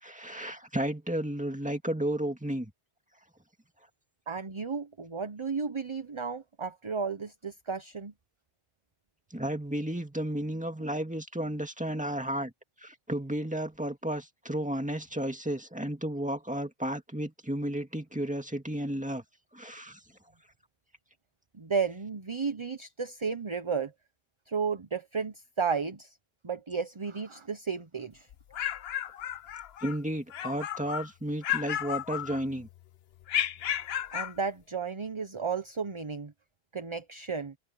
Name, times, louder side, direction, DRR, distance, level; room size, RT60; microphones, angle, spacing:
voice 1, 0.0-2.7 9.3-12.5 12.8-19.2 19.5-20.0 29.8-32.7, right 1 dB, 5° right, 2.0 m, -33 dB
voice 2, 4.3-8.1 21.5-23.9 24.5-26.2 26.4-28.3 34.1-36.3 36.7-37.5, right 5 dB, 30° right, 0.9 m, -33 dB
sound 1, 28.3-30.0 30.3-31.1 31.4-32.7 33.3-34.4, left 10 dB, 70° left, 0.9 m, -33 dB
omnidirectional pair, 1.1 m